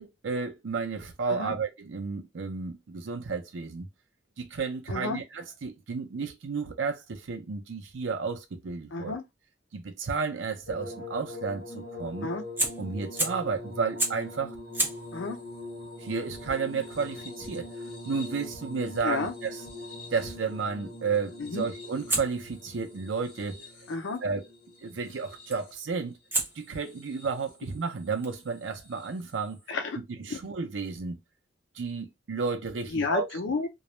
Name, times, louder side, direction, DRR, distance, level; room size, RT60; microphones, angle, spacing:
voice 1, 0.0-3.9 4.4-9.2 9.7-12.3 12.8-14.5 16.0-19.6 20.1-23.7 24.2-24.5 24.8-26.2 26.6-29.6 30.2-31.2 31.7-33.3, right 5 dB, 85° right, 0.5 m, -32 dB
voice 2, 4.9-5.2 8.9-9.2 12.2-12.4 15.1-15.4 19.0-19.3 21.4-21.6 23.9-24.2 29.7-30.0 30.3-30.4 32.9-33.7, left 3 dB, 85° left, 0.6 m, -31 dB
sound 1, 10.7-25.9 26.8-27.5 28.9-29.1, left 2 dB, 55° left, 0.9 m, -43 dB
Fire, 12.6-13.5 14.0-14.3 14.7-19.6 22.1-24.2 25.5-25.8 26.3-29.7, right 2 dB, 10° right, 0.5 m, -36 dB
2.3 x 2.0 x 3.0 m
head